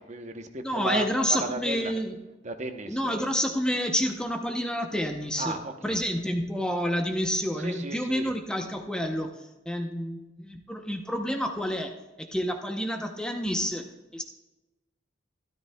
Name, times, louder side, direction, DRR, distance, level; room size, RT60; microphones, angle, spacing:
voice 1, 0.0-1.9 2.4-3.3 5.4-6.0 7.6-8.3, right 2 dB, 35° right, 6 dB, 0.8 m, -35 dB
voice 2, 0.6-2.2 2.9-5.6 5.8-9.3 9.7-13.8 14.1-14.2, equal, 5° left, 3 dB, 0.7 m, -29 dB
13.0 x 13.0 x 2.2 m, 1.1 s
head